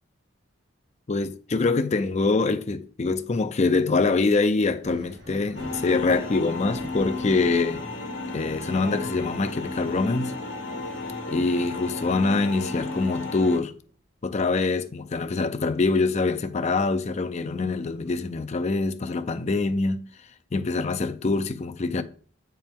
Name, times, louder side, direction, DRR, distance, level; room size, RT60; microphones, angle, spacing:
voice 1, 1.1-7.8 8.3-10.4 11.3-13.7 14.2-20.1 20.5-22.0, left 3 dB, 35° left, 0.4 m, -24 dB
Thunder, 4.8-14.0 14.4-15.6 17.2-17.3 18.0-18.2, equal, 55° right, 2.0 m, -46 dB
sound 1, 5.5-13.6, left 2 dB, 75° left, 1.4 m, -33 dB
7.6 x 4.5 x 3.6 m
head